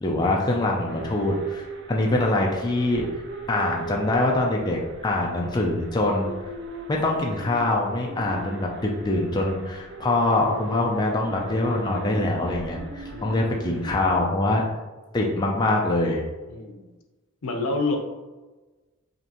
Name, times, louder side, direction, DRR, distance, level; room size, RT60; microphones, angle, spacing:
voice 1, 0.0-3.1 3.5-6.3 6.9-14.6 15.1-16.2, left 2 dB, 20° left, -1 dB, 0.4 m, -24 dB
sound 1, 0.9-14.3, right 3 dB, 55° right, 0.5 m, -38 dB
voice 2, 13.1-13.4 16.5-16.9 17.4-18.0, left 3 dB, 75° left, 3 dB, 0.7 m, -29 dB
5.0 x 2.6 x 2.9 m, 1.2 s
head